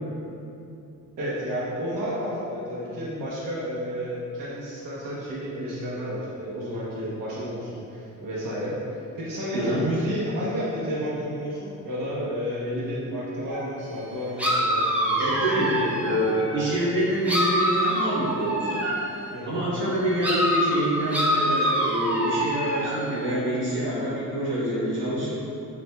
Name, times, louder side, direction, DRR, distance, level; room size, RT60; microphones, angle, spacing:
voice 1, 1.2-15.6 16.0-16.5 19.3-19.6, equal, 85° right, -7 dB, 0.9 m, -31 dB
voice 2, 9.5-9.8 15.2-18.8 19.4-25.3, right 1 dB, 40° right, -9 dB, 1.1 m, -26 dB
sound 1, 13.5-13.7 14.4-16.6 17.2-19.1 20.2-23.1, equal, 5° right, 0.3 m, -25 dB
6.8 x 2.6 x 2.2 m, 2.8 s
cardioid pair, 165°, 32 cm